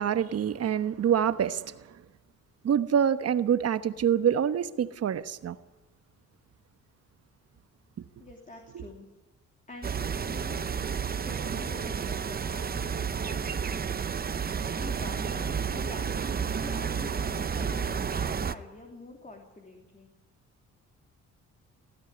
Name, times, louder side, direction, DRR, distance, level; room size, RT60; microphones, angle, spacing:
voice 1, 0.0-1.7 2.6-5.6 8.7-8.8, right 8 dB, 55° right, 1.1 m, -26 dB
voice 2, 8.2-9.1 9.7-13.9 14.6-20.1, left 2 dB, 25° left, 3.1 m, -46 dB
sound 1, 9.8-18.5, right 6 dB, 30° right, 0.8 m, -31 dB
19.0 x 14.5 x 9.8 m
cardioid pair, 90°, 30 cm